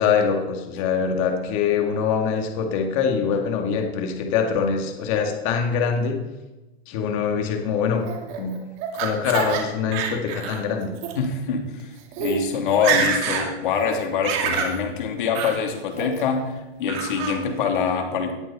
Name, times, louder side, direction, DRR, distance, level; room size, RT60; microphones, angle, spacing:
voice 1, 0.0-6.2 6.9-8.0 8.4-8.6 8.9-10.9, left 6 dB, 30° left, 3 dB, 2.0 m, -23 dB
Laughter, 8.1-9.6 9.9-10.6 11.0-11.1 11.8-11.9 12.1-12.4 12.7-13.5 13.8-14.7 15.3-15.6 16.0-16.4 16.9-17.4, right 7 dB, 30° right, 2.4 m, -26 dB
voice 2, 11.2-11.9 12.2-16.5 16.8-18.3, left 6 dB, 50° left, 3 dB, 3.1 m, -24 dB
18.5 x 14.5 x 4.2 m, 1.1 s
supercardioid pair, 180°, 32 cm